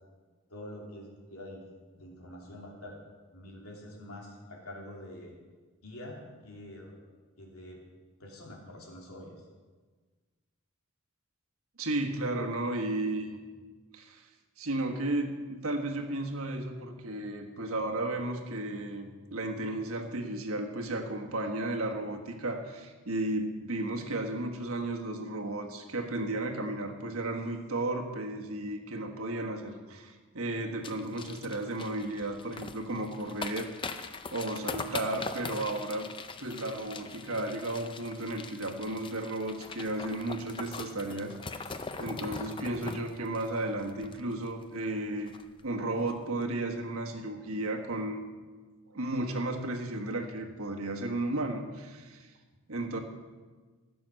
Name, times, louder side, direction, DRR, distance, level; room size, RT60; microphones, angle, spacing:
voice 1, 0.5-1.6 1.9-3.0 3.3-5.4 5.8-6.9 7.4-7.8 8.2-9.4, left 1 dB, 85° left, -2 dB, 3.1 m, -46 dB
voice 2, 11.8-13.4 13.9-14.3 14.6-36.1 36.4-45.4 45.6-48.2 48.9-52.3 52.7-53.0, right 2 dB, 75° right, 3 dB, 1.4 m, -34 dB
sound 1, 30.8-44.6 44.9-45.0 45.3-45.6 46.0-46.1, left 4 dB, 20° left, 0.4 m, -42 dB
15.5 x 7.0 x 6.4 m, 1.4 s
head